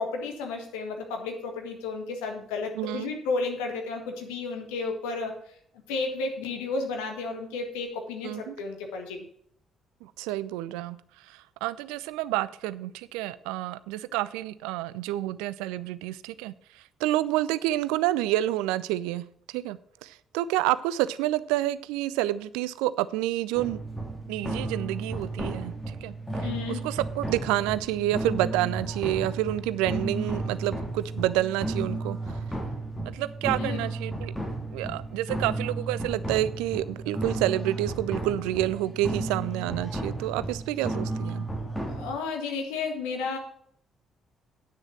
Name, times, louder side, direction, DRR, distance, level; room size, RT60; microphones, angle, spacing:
voice 1, 0.0-5.6 5.9-9.3 26.4-26.8 33.6-33.9 41.9-43.4, left 4 dB, 70° left, 3 dB, 1.7 m, -32 dB
voice 2, 2.8-3.1 8.2-8.5 10.0-11.0 11.3-23.8 24.3-26.1 26.7-32.2 33.0-34.3 34.7-41.5, right 15 dB, 65° right, 17 dB, 0.4 m, -29 dB
sound 1, 23.5-42.1, right 2 dB, 10° left, 2.8 m, -33 dB
9.6 x 6.4 x 6.0 m, 0.65 s
figure-of-eight pair, 45°, 0 cm